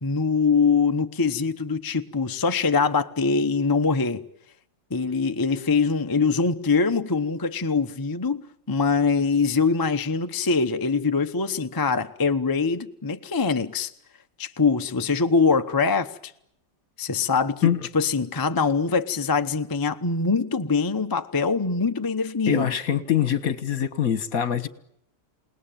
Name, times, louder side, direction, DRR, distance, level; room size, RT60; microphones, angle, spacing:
voice 1, 0.0-4.2 4.9-13.9 14.4-16.3 17.0-22.7, left 4 dB, 20° left, 0.6 m, -23 dB
voice 2, 22.5-24.7, left 9 dB, 55° left, 1.7 m, -24 dB
28.5 x 19.0 x 9.1 m
omnidirectional pair, 1.9 m